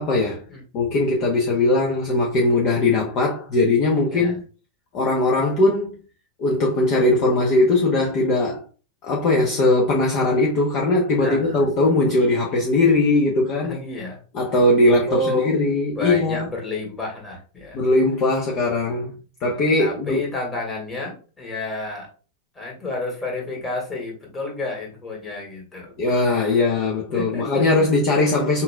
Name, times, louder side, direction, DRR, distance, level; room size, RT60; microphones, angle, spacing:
voice 1, 0.0-0.4 0.7-4.4 4.9-6.0 6.4-8.6 9.0-13.8 14.3-16.5 17.7-20.2 26.0-28.6, left 2 dB, 40° left, 0.8 m, -20 dB
voice 2, 4.0-4.4 11.2-11.9 13.6-14.2 14.8-15.5 16.0-17.8 19.8-22.1 22.6-26.0 27.1-27.9, left 2 dB, 15° left, 1.8 m, -30 dB
5.7 x 2.6 x 2.2 m
figure-of-eight pair, 90°, 0 cm